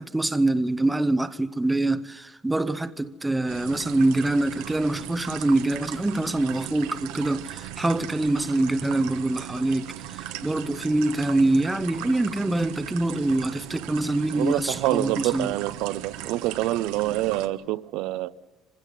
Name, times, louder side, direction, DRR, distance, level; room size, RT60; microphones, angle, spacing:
voice 1, 0.0-15.5, right 2 dB, 10° right, 0.7 m, -25 dB
sound 1, 3.5-17.5, right 13 dB, 90° right, 1.3 m, -38 dB
voice 2, 14.3-18.3, right 16 dB, 75° right, 0.7 m, -26 dB
24.0 x 16.0 x 9.3 m
cardioid pair, 145°, 0 cm